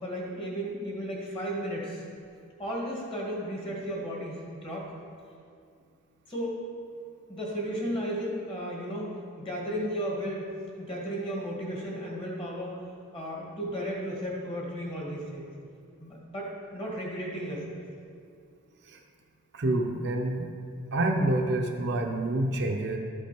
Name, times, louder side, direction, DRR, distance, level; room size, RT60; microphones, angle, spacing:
voice 1, 0.0-2.0 2.6-4.9 6.3-6.7 7.3-10.5 10.8-12.8 13.1-15.5 16.0-17.8, equal, 25° left, -3 dB, 2.0 m, -34 dB
voice 2, 19.5-20.5 20.9-23.0, right 1 dB, 50° right, 2 dB, 0.7 m, -27 dB
13.0 x 5.4 x 5.2 m, 2.4 s
head